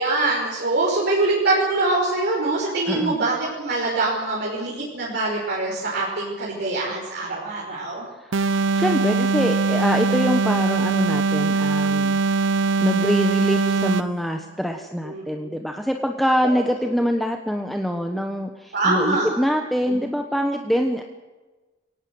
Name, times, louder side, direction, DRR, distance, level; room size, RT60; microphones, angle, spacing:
voice 1, 0.0-8.0 15.1-15.5 18.7-19.3, right 2 dB, 55° right, -4 dB, 5.6 m, -24 dB
sound 1, 8.3-14.2, right 3 dB, 75° right, 0.8 m, -21 dB
voice 2, 8.7-12.2 12.8-21.0, equal, ahead, 4 dB, 1.2 m, -24 dB
24.0 x 18.0 x 8.0 m, 1.2 s
head